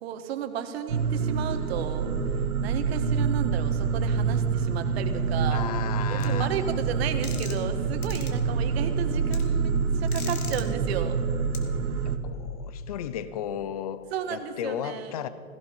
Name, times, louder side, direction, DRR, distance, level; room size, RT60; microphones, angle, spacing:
voice 1, 0.0-2.1 2.6-5.7 6.1-11.2 14.1-15.1, right 8 dB, 45° right, 7 dB, 1.5 m, -33 dB
sound 1, 0.9-12.2, right 5 dB, 85° right, 1.4 m, -26 dB
voice 2, 5.5-6.8 12.1-14.0 14.3-15.3, left 9 dB, 25° left, 14 dB, 0.5 m, -35 dB
sound 2, 6.2-6.3 7.2-7.7 8.0-8.3 9.3-9.4 10.1-10.6 11.5-11.6, left 5 dB, 75° left, 2.5 m, -39 dB
17.0 x 16.5 x 5.3 m, 2.5 s
hypercardioid pair, 140°, 44 cm